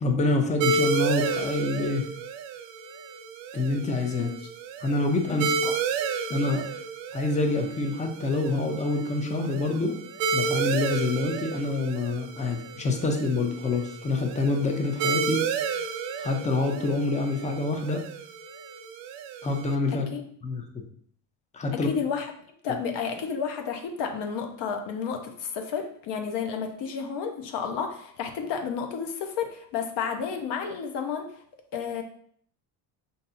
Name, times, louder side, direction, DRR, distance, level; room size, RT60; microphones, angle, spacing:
voice 1, 0.0-2.0 3.5-4.3 4.8-5.5 6.3-6.6 7.1-10.0 10.3-15.4 16.2-18.0 19.4-20.1 20.4-20.8 21.5-21.9, left 2 dB, 15° left, 4 dB, 0.4 m, -26 dB
sound 1, 0.6-19.7, right 5 dB, 75° right, 0.5 m, -32 dB
voice 2, 5.3-5.7 19.9-20.2 21.7-22.3 22.6-31.3 31.7-32.0, left 6 dB, 65° left, 5 dB, 0.8 m, -31 dB
5.4 x 2.6 x 2.6 m, 0.62 s
cardioid pair, 125°, 45 cm